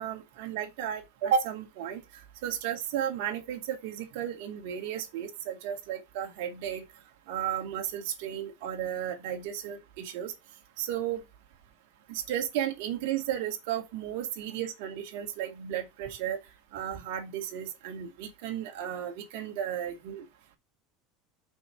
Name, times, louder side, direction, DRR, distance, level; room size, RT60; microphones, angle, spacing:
voice 1, 0.0-2.0 2.4-6.8 7.3-10.3 10.8-11.2 12.1-16.4 16.7-20.2, right 9 dB, 70° right, 2.3 m, -33 dB
6.0 x 4.6 x 5.8 m
supercardioid pair, 120°, 0 cm